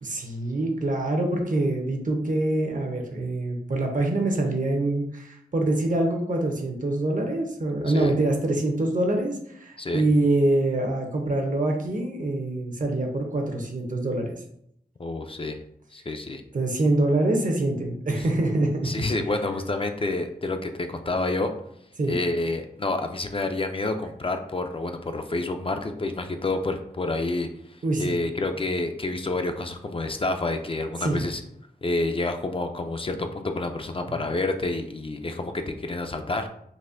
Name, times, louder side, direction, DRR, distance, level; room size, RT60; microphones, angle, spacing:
voice 1, 0.0-14.3 16.5-18.9 22.0-22.2 27.8-28.1 31.0-31.2, right 2 dB, 55° right, 2 dB, 0.7 m, -25 dB
voice 2, 15.0-15.6 15.9-16.4 18.8-21.5 22.1-27.5 28.0-31.4 31.8-36.5, left 2 dB, 35° left, 6 dB, 0.4 m, -28 dB
4.0 x 2.6 x 2.5 m, 0.73 s
wide cardioid pair, 65°, 16 cm